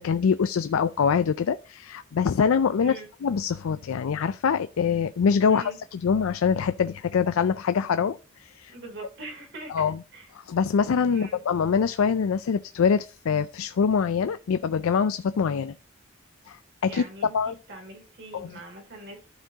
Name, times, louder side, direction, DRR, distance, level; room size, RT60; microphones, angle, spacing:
voice 1, 0.0-2.9 3.2-8.7 9.7-10.0 10.5-15.7 16.5-16.6 16.8-17.0 17.3-17.5 18.3-18.5, left 6 dB, 85° left, 0.4 m, -24 dB
voice 2, 5.5-5.8 8.7-9.9 10.1-10.3 11.1-11.4 16.8-19.2, right 2 dB, 60° right, 3.2 m, -42 dB
13.5 x 4.6 x 2.8 m
head